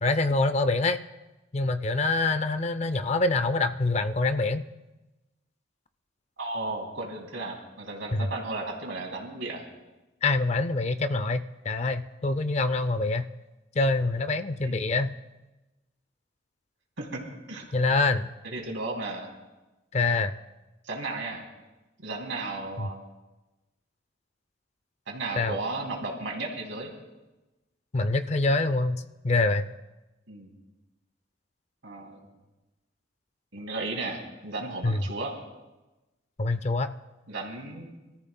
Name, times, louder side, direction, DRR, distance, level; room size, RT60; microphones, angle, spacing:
voice 1, 0.0-1.0 1.5-4.7 8.1-8.3 10.2-13.3 13.8-15.2 17.7-18.3 19.9-20.3 22.8-22.9 25.4-25.6 27.9-29.7 34.8-35.0 36.4-37.0, left 3 dB, 35° left, 12 dB, 0.4 m, -25 dB
voice 2, 6.4-9.7 14.6-14.8 17.0-17.6 18.4-19.3 20.8-21.4 22.0-23.0 25.1-26.9 30.3-30.5 31.8-32.2 33.5-35.3 37.3-37.9, right 2 dB, 80° right, 0 dB, 2.9 m, -34 dB
25.0 x 14.0 x 2.2 m, 1.1 s
head